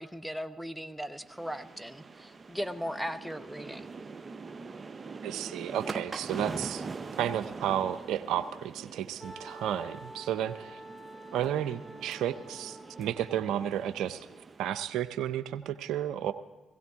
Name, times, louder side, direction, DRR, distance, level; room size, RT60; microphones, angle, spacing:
voice 1, 0.0-3.9, equal, 5° right, 10 dB, 0.9 m, -38 dB
sound 1, 1.2-14.7, right 4 dB, 40° right, 0.7 m, -43 dB
voice 2, 5.2-6.8 7.2-10.8 11.3-14.3 14.6-16.3, right 10 dB, 75° right, 13 dB, 0.5 m, -32 dB
Wind instrument woodwind instrument, 9.2-13.8, right 1 dB, 20° left, 3.5 m, -48 dB
16.5 x 16.5 x 3.6 m, 1.2 s
hypercardioid pair, 50°, 0 cm